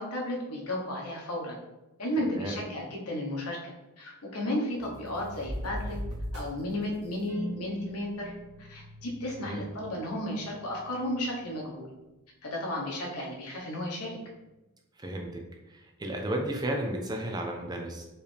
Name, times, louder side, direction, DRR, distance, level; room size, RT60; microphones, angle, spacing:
voice 1, 0.0-1.6 2.0-6.0 6.3-8.3 8.6-11.9 12.4-14.2, left 1 dB, 85° left, -2 dB, 1.2 m, -33 dB
voice 2, 2.2-2.6 9.4-9.6 15.0-15.3 15.7-18.0, right 1 dB, 20° right, 1 dB, 0.5 m, -33 dB
sound 1, 4.7-11.5, equal, 85° right, 1.5 m, -41 dB
4.6 x 3.3 x 3.4 m, 1.0 s
head